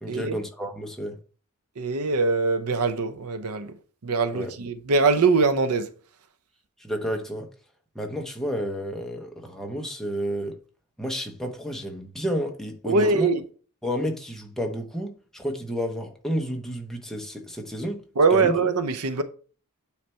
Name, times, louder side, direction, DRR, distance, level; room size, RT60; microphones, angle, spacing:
voice 1, 0.0-1.2 4.3-4.5 6.8-7.5 7.9-10.6 11.0-13.3 13.8-18.0 18.3-18.6, equal, ahead, 0.9 m, -31 dB
voice 2, 1.8-3.7 4.0-5.9 12.9-13.4 18.2-19.2, right 4 dB, 80° right, 0.7 m, -22 dB
9.4 x 3.3 x 4.3 m
head